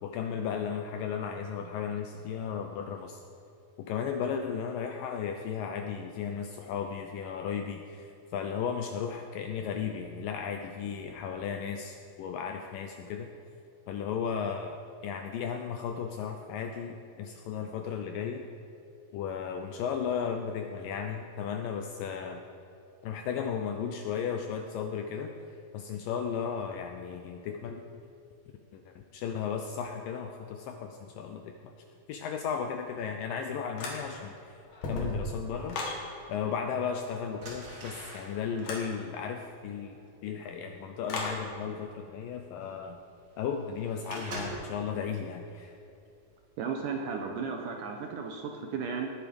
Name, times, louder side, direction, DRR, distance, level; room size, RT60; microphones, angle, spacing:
voice 1, 0.0-3.2 3.8-13.3 13.9-14.8 15.0-18.5 19.1-22.4 23.0-27.8 28.7-31.7 32.1-34.6 34.9-35.8 36.3-43.0 43.4-45.7, left 7 dB, 80° left, 5 dB, 2.0 m, -35 dB
sound 1, 33.8-34.3 34.7-36.0 38.6-38.9 41.1-41.4, left 2 dB, 60° left, 3.5 m, -35 dB
sound 2, 36.7-36.9 37.3-44.8 45.3-45.7 46.1-46.3, right 1 dB, 30° right, 3.0 m, -44 dB
voice 2, 46.6-49.1, right 5 dB, 75° right, 2 dB, 2.0 m, -34 dB
19.0 x 8.4 x 5.2 m, 2.7 s
omnidirectional pair, 4.6 m